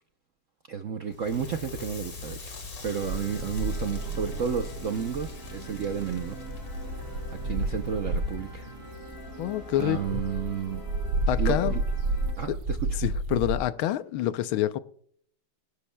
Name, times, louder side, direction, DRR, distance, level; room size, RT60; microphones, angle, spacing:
voice 1, 0.7-2.5 2.8-6.4 7.4-8.7 9.8-10.8 11.4-11.8 12.4-12.8, right 7 dB, 65° right, 0.7 m, -31 dB
Crackle, 1.1-10.1, left 3 dB, 45° left, 2.2 m, -42 dB
sound 1, 2.9-12.3, right 1 dB, 10° left, 6.8 m, -44 dB
sound 2, 3.0-8.5 9.0-13.6, right 2 dB, 90° right, 2.0 m, -31 dB
voice 2, 9.4-10.2 11.3-11.7 12.5-12.6 13.0-14.8, left 13 dB, 80° left, 1.4 m, -27 dB
22.5 x 11.5 x 2.2 m
omnidirectional pair, 2.2 m